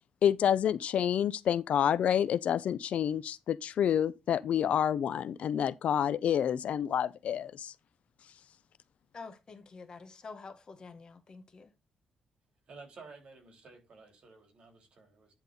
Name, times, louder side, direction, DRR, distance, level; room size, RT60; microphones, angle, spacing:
voice 1, 0.2-7.7, left 9 dB, 60° left, 0.5 m, -28 dB
voice 2, 9.1-11.7, left 4 dB, 35° left, 1.2 m, -48 dB
voice 3, 12.7-15.3, right 4 dB, 45° right, 3.5 m, -53 dB
10.5 x 3.8 x 5.3 m
wide cardioid pair, 155°, 2 cm